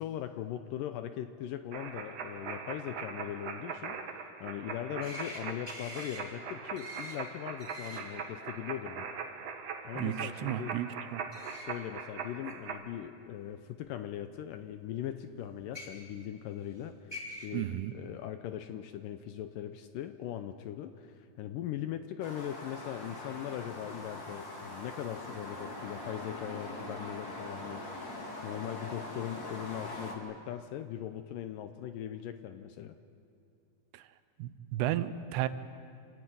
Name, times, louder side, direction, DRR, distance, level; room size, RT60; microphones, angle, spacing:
voice 1, 0.0-9.1 9.8-10.8 11.4-17.1 17.4-27.8 28.4-33.0, left 11 dB, 85° left, 9 dB, 2.0 m, -40 dB
sound 1, 1.7-12.8, right 6 dB, 60° right, 1.8 m, -41 dB
sound 2, 5.0-5.4 5.7-6.2 6.7-7.2 7.6-8.0 11.3-11.7 12.5-12.6 13.8-13.9 15.6-15.9 16.7-16.8 17.1-17.5, equal, 5° left, 3.5 m, -43 dB
voice 2, 9.9-11.3 17.5-17.9 33.9-34.1 34.4-35.5, right 13 dB, 85° right, 12 dB, 2.8 m, -33 dB
sound 3, 22.2-30.1, left 2 dB, 30° left, 2.8 m, -42 dB
28.0 x 13.5 x 9.3 m, 2.4 s
omnidirectional pair, 4.7 m